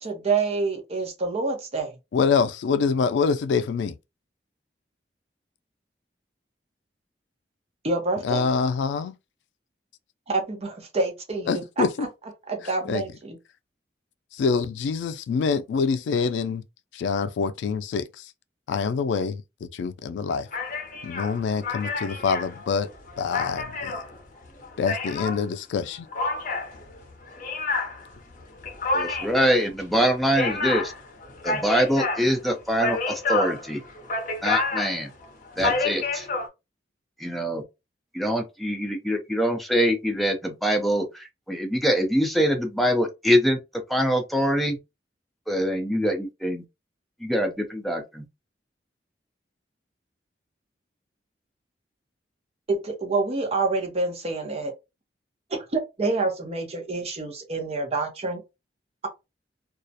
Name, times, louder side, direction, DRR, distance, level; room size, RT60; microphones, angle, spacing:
voice 1, 0.0-1.9 7.8-8.5 10.3-12.1 12.5-13.4 52.7-54.7 55.5-58.4, right 3 dB, 35° right, 0.7 m, -27 dB
voice 2, 2.1-3.9 8.2-9.1 11.5-11.9 12.9-13.0 14.4-16.6 17.0-18.0 18.7-19.4 19.8-20.4 21.0-22.9 23.2-23.9 24.8-26.1, left 5 dB, 90° left, 0.3 m, -25 dB
sound 1, 20.5-25.4 26.1-36.5, left 3 dB, 50° left, 0.6 m, -29 dB
voice 3, 28.9-30.9 31.4-33.8 34.4-35.1 35.6-36.3 37.2-37.6 38.1-43.6 43.9-44.8 45.5-46.6 47.2-48.2, equal, ahead, 0.5 m, -24 dB
2.3 x 2.0 x 2.6 m
head